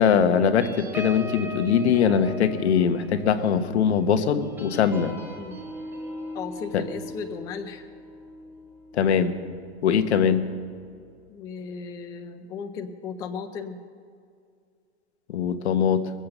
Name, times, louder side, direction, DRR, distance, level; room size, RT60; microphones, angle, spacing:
voice 1, 0.0-5.1 6.7-6.8 8.9-9.3 9.8-10.4 15.3-16.1, left 7 dB, 80° left, 10 dB, 1.2 m, -21 dB
sound 1, 0.6-9.5 10.0-10.2 10.5-10.8, left 1 dB, 5° right, 1.4 m, -39 dB
voice 2, 6.3-7.9 11.3-13.8, left 5 dB, 10° left, 7 dB, 0.3 m, -36 dB
22.0 x 7.8 x 6.7 m, 2.3 s
hypercardioid pair, 150°, 33 cm